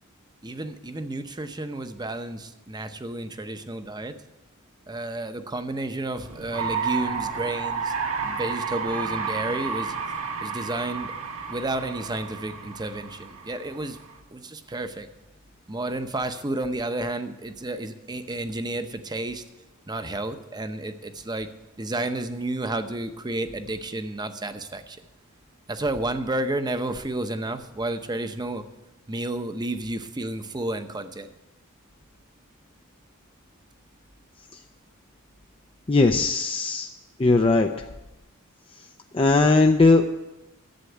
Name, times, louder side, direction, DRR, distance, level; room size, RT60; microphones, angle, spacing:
voice 1, 0.4-4.1 4.9-7.9 8.2-9.9 10.4-11.1 11.5-14.0 14.3-15.1 15.7-19.4 19.9-21.5 21.8-25.0 25.7-28.6 29.1-31.3, right 2 dB, 20° right, 9 dB, 0.8 m, -31 dB
sound 1, 6.2-14.2, right 5 dB, 80° right, 1.6 m, -31 dB
voice 2, 35.9-36.9 37.2-37.7 39.1-40.0, left 3 dB, 25° left, 4 dB, 0.5 m, -18 dB
11.5 x 8.3 x 7.9 m, 0.99 s
head